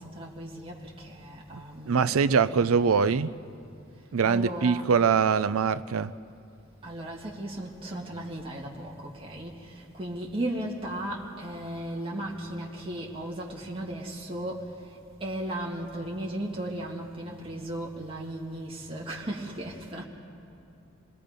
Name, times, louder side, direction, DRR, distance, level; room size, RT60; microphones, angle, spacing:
voice 1, 0.0-2.7 4.2-4.9 6.8-14.7 15.2-20.0, right 1 dB, 25° right, 2.2 m, -36 dB
voice 2, 1.5-3.3 4.1-6.1, right 6 dB, 75° right, 0.5 m, -23 dB
28.0 x 20.0 x 5.2 m
head